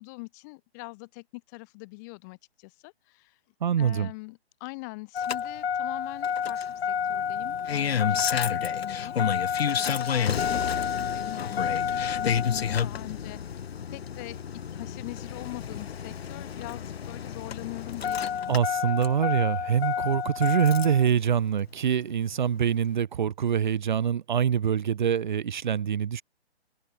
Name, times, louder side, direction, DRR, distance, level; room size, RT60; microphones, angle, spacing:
voice 1, 0.0-3.4 3.8-8.2 8.5-13.6 13.9-18.6, left 29 dB, 15° left, 1.9 m, -42 dB
voice 2, 3.6-4.1 18.5-26.2, right 8 dB, 45° right, 2.4 m, -25 dB
Engine starting, 5.1-21.1 22.3-22.4, left 8 dB, 65° left, 1.0 m, -29 dB
hypercardioid pair, 165°, 32 cm